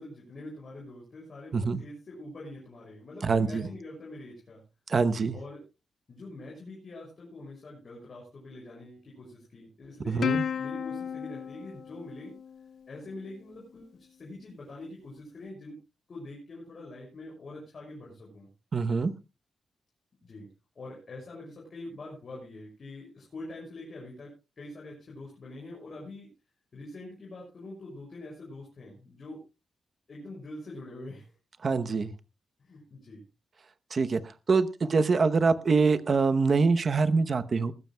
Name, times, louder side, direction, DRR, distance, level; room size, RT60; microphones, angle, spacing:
voice 1, 0.0-4.6 5.3-5.6 6.1-10.3 10.5-12.3 12.9-15.8 16.1-18.5 20.2-20.5 20.7-24.3 24.6-26.3 26.7-29.4 30.1-31.3 32.6-33.2, left 2 dB, 40° left, -3 dB, 6.7 m, -44 dB
voice 2, 3.2-3.6 4.9-5.4 10.1-10.5 18.7-19.1 31.6-32.1 33.9-34.2 34.5-37.7, right 4 dB, 40° right, 11 dB, 0.8 m, -24 dB
Plucked string instrument, 10.2-13.0, left 7 dB, 60° left, 0.6 m, -33 dB
20.0 x 15.0 x 2.2 m, 0.29 s
wide cardioid pair, 155°, 0 cm